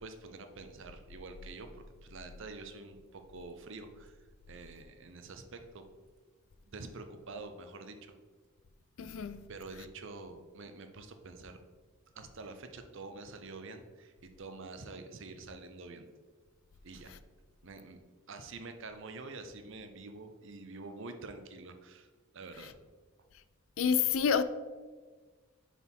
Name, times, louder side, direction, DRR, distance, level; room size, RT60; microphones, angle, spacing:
voice 1, 0.0-4.2 4.5-5.8 6.6-8.1 9.5-11.6 12.1-16.1 16.8-17.1 17.6-18.0 18.3-22.1 22.3-22.7, right 3 dB, 60° right, 0.7 m, -47 dB
voice 2, 9.0-9.4 23.8-24.4, left 7 dB, 70° left, 0.4 m, -28 dB
7.0 x 4.2 x 4.4 m
head